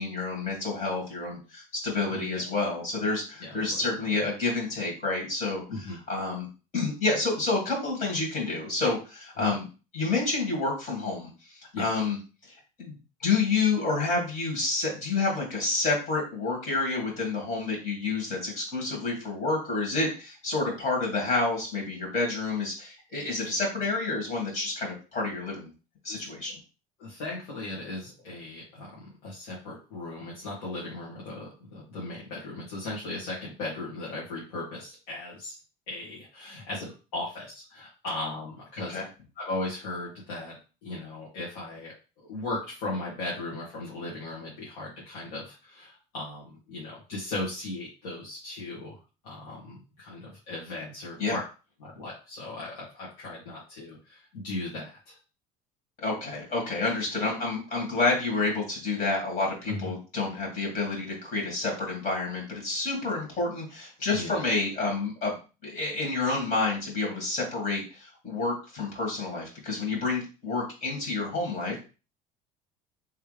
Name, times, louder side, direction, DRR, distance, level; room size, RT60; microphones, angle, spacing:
voice 1, 0.0-6.5 6.7-9.7 9.9-12.2 12.4-12.9 13.2-25.7 26.0-26.5 38.9-39.0 51.2-51.4 56.0-65.4 65.6-71.8, left 3 dB, 50° left, -1 dB, 2.1 m, -29 dB
voice 2, 2.1-2.4 3.4-3.8 5.7-6.0 9.4-9.5 11.7-11.9 26.1-26.2 27.0-35.5 35.9-39.0 39.4-41.9 42.2-49.0 49.2-51.4 51.8-55.1 59.7-59.9 64.1-64.4, left 2 dB, 80° left, -7 dB, 1.7 m, -37 dB
3.4 x 3.3 x 3.3 m, 0.33 s
supercardioid pair, 105°, 18 cm